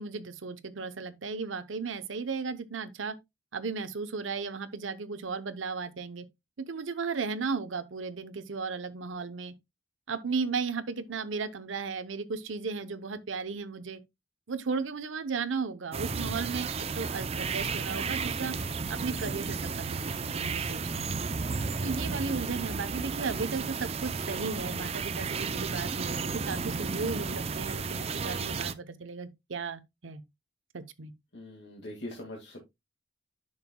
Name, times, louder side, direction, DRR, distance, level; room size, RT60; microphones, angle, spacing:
voice 1, 0.0-3.1 3.5-6.3 6.7-9.5 10.1-14.0 14.5-18.6 18.9-21.3 21.8-30.2 30.7-31.1, right 4 dB, 85° right, 0.8 m, -35 dB
sound 1, 15.9-28.7, right 4 dB, 30° right, 0.5 m, -33 dB
voice 2, 21.7-22.0 24.5-24.9 31.3-32.6, left 1 dB, 60° left, 2.0 m, -43 dB
10.5 x 6.5 x 2.2 m
head